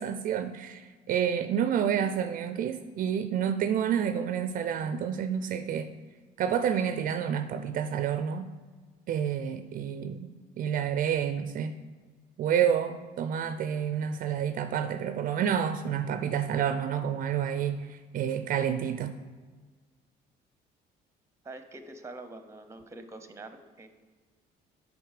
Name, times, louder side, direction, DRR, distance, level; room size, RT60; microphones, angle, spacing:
voice 1, 0.0-5.9 6.4-8.5 9.1-10.3 10.6-11.7 12.4-19.1, right 8 dB, 55° right, 9 dB, 0.4 m, -29 dB
voice 2, 21.4-23.9, right 2 dB, 15° right, 9 dB, 0.7 m, -45 dB
7.8 x 5.2 x 4.9 m, 1.4 s
cardioid pair, 110°, 17 cm